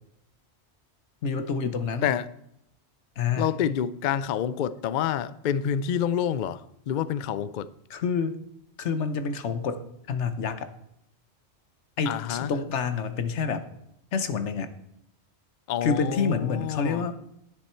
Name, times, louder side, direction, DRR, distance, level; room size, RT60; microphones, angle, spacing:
voice 1, 1.2-2.1 3.2-3.5 7.9-8.4 8.8-10.7 12.0-13.6 14.1-14.7 15.8-17.1, left 5 dB, 85° left, 1.2 m, -28 dB
voice 2, 3.4-7.7 12.1-12.5 15.7-17.0, left 9 dB, 60° left, 0.5 m, -28 dB
10.0 x 10.0 x 4.4 m
omnidirectional pair, 1.2 m